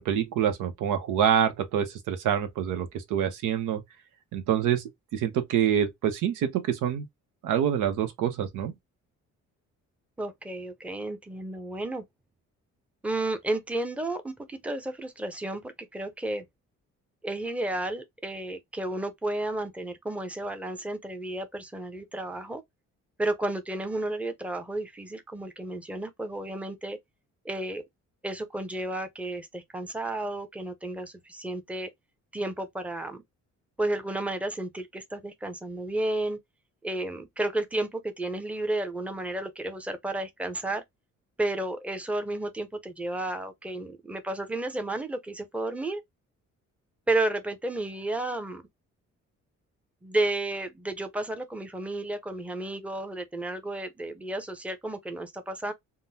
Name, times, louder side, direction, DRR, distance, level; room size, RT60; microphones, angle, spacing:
voice 1, 0.0-3.8 4.3-4.8 5.1-7.1 7.4-8.7, right 9 dB, 90° right, 0.8 m, -26 dB
voice 2, 10.2-12.0 13.0-16.5 17.2-22.6 23.2-27.0 27.4-27.8 28.2-31.9 32.3-33.2 33.8-36.4 36.8-40.8 41.4-46.0 47.1-48.6 50.0-55.7, right 2 dB, 5° right, 0.6 m, -32 dB
3.6 x 2.1 x 2.7 m
cardioid pair, 90°, 30 cm